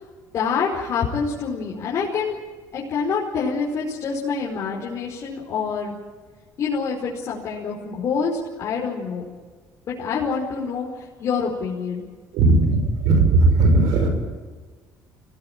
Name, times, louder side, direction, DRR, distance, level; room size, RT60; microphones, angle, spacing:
voice 1, 0.3-2.4 2.7-5.9 6.6-9.2 9.8-12.0, left 5 dB, 50° left, -4 dB, 5.1 m, -26 dB
voice 2, 12.3-14.1, right 3 dB, 80° right, 5 dB, 5.4 m, -17 dB
25.0 x 17.5 x 9.1 m, 1.5 s
cardioid pair, 120°, 7 cm